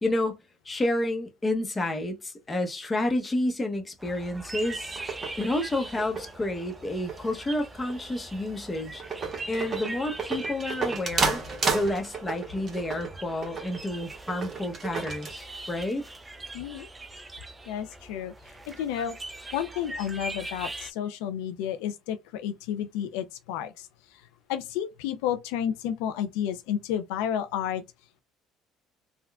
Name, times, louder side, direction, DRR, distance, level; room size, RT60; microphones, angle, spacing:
voice 1, 0.0-0.4 0.7-5.0 5.4-9.0 9.5-11.4 11.7-16.0, left 1 dB, 20° left, 0.8 m, -30 dB
sound 1, 4.0-20.9, right 2 dB, 20° right, 0.5 m, -42 dB
sound 2, 4.7-15.3, right 4 dB, 40° right, 1.1 m, -34 dB
voice 2, 16.5-16.9 17.7-18.3 18.7-19.1 19.5-24.2 24.5-27.8, left 9 dB, 85° left, 0.4 m, -31 dB
3.6 x 2.2 x 2.2 m
supercardioid pair, 90°, 0 cm